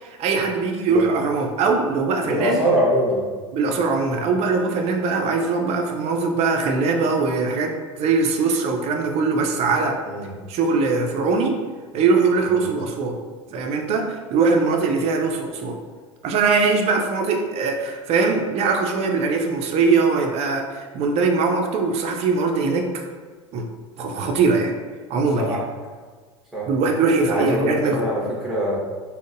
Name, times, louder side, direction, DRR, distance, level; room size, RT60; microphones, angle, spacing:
voice 1, 0.0-2.6 3.5-10.0 10.5-11.6 11.9-13.2 13.5-15.8 16.2-22.9 23.5-23.7 24.0-24.7 25.1-25.6 26.7-28.1, right 4 dB, 45° right, 3 dB, 0.5 m, -21 dB
voice 2, 2.2-3.2 10.1-10.3 12.4-12.6 25.4-25.6 26.5-26.7 27.3-28.8, equal, 5° right, -6 dB, 1.1 m, -23 dB
3.7 x 2.1 x 2.5 m, 1.5 s
hypercardioid pair, 85°, 15 cm